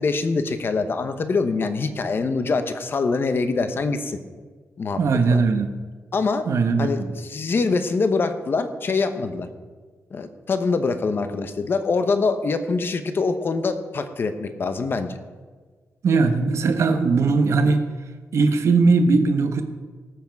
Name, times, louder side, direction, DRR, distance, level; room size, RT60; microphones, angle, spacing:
voice 1, 0.0-4.2 4.8-5.4 6.1-6.5 6.8-9.5 10.1-15.2, left 4 dB, 45° left, 9 dB, 1.0 m, -24 dB
voice 2, 5.0-5.7 6.5-6.9 16.0-17.8 18.3-19.6, right 4 dB, 60° right, 7 dB, 1.1 m, -19 dB
18.5 x 7.4 x 4.7 m, 1.5 s
wide cardioid pair, 140°, 5 cm